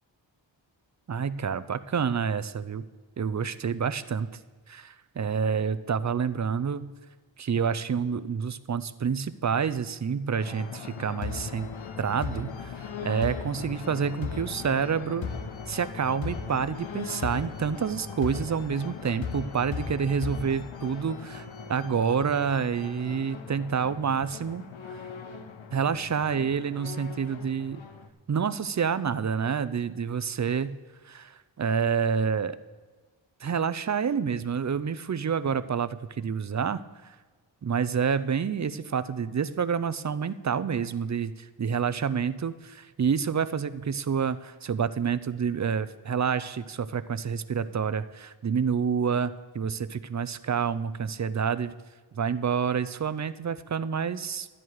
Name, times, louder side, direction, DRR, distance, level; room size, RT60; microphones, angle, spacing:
voice 1, 1.1-2.8 3.2-4.3 4.7-6.9 7.4-11.7 12.0-12.7 13.0-15.3 15.7-21.4 21.7-24.6 25.7-27.8 28.3-30.8 31.1-32.6 33.4-36.8 37.6-51.7 52.1-54.5, right 6 dB, 40° right, 14 dB, 0.5 m, -28 dB
sound 1, 10.4-28.1, left 5 dB, 75° left, 1.0 m, -38 dB
12.5 x 10.0 x 4.7 m, 1.4 s
wide cardioid pair, 115°, 47 cm